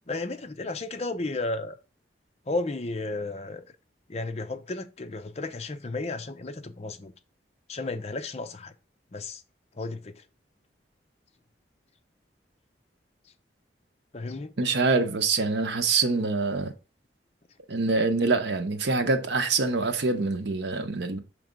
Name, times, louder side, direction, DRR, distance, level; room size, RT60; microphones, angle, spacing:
voice 1, 0.1-1.7 2.5-3.6 4.1-7.1 7.7-8.7 9.1-9.4 9.8-10.1 14.1-14.5, left 2 dB, 35° left, 0.6 m, -33 dB
voice 2, 14.6-16.7 17.7-21.2, right 3 dB, 75° right, 0.8 m, -25 dB
6.0 x 3.4 x 5.1 m
head